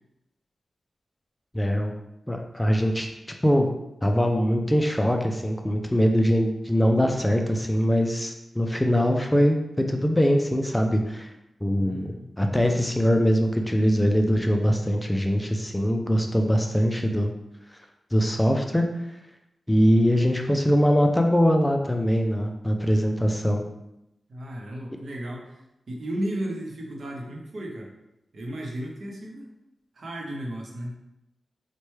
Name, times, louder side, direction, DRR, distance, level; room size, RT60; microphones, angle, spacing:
voice 1, 1.5-1.9 2.3-3.1 3.4-3.7 4.0-11.3 11.6-12.1 12.4-17.3 18.1-18.8 19.7-23.6, equal, 10° left, 3 dB, 0.3 m, -22 dB
voice 2, 11.8-12.3 24.3-27.9 28.3-29.5 29.9-30.9, right 1 dB, 65° right, 0 dB, 0.7 m, -34 dB
4.2 x 2.2 x 3.1 m, 0.89 s
wide cardioid pair, 85°, 0 cm